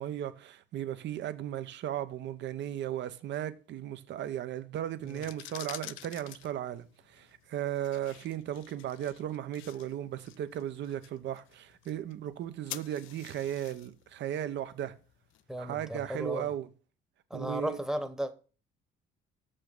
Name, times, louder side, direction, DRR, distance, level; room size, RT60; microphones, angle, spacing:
voice 1, 0.0-14.9 15.6-16.7 17.3-17.8, right 11 dB, 60° right, 0.9 m, -36 dB
sound 1, 5.0-15.8, left 14 dB, 75° left, 0.5 m, -49 dB
voice 2, 15.5-16.5 17.3-18.3, equal, 5° right, 1.0 m, -35 dB
6.7 x 5.6 x 6.6 m
cardioid pair, 100°, 20 cm